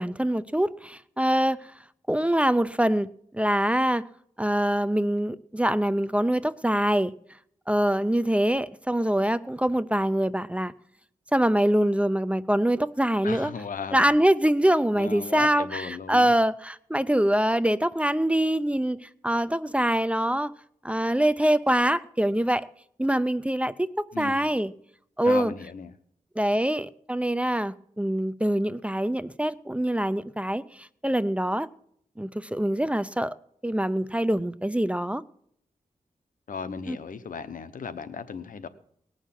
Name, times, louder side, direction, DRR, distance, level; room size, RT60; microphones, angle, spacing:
voice 1, 0.0-1.6 2.1-3.1 3.3-4.0 4.4-7.1 7.7-10.7 11.3-13.5 13.9-20.5 20.8-22.7 23.0-24.7 25.2-25.5 26.4-31.7 32.2-33.3 33.6-35.2 36.9-37.0, right 1 dB, 10° right, 0.5 m, -24 dB
voice 2, 13.2-14.1 14.9-16.3 24.1-24.5 25.2-25.9 36.5-38.7, left 5 dB, 85° left, 0.9 m, -36 dB
19.0 x 6.5 x 7.5 m
wide cardioid pair, 85°, 14 cm